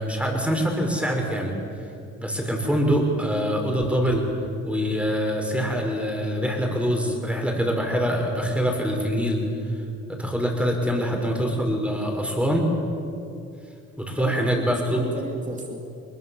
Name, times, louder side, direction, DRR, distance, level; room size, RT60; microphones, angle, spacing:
voice 1, 0.0-1.5 2.2-4.2 4.6-9.4 10.1-12.7 14.0-15.0, equal, 5° right, 2 dB, 5.7 m, -24 dB
voice 2, 11.0-11.3 14.2-15.8, right 2 dB, 25° right, 1 dB, 3.2 m, -35 dB
21.5 x 21.0 x 7.4 m, 2.6 s
cardioid pair, 75°, 30 cm